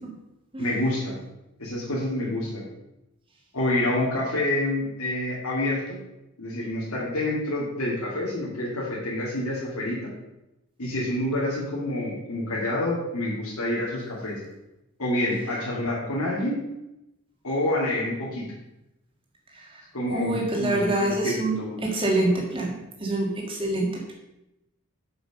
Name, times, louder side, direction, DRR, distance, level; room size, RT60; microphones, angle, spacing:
voice 1, 0.6-1.1 1.6-2.6 3.5-6.0 6.4-10.1 10.8-14.4 15.0-16.6 17.4-18.4 19.9-21.8, left 1 dB, 85° left, -6 dB, 2.5 m, -27 dB
voice 2, 20.1-21.5 21.8-22.7 23.0-24.1, right 2 dB, 25° right, -1 dB, 1.9 m, -25 dB
7.7 x 5.9 x 5.3 m, 0.91 s
head